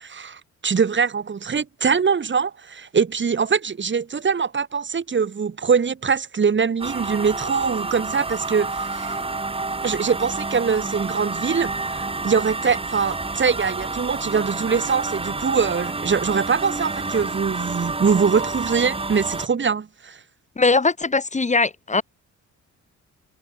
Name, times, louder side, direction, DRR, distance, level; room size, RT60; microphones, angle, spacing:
voice 1, 0.0-9.2 9.8-20.2, right 6 dB, 40° right, 4.4 m, -23 dB
sound 1, 6.8-19.5, right 3 dB, 20° right, 2.0 m, -29 dB
voice 2, 20.6-22.0, left 3 dB, 25° left, 3.8 m, -20 dB
cardioid pair, 90°, 30 cm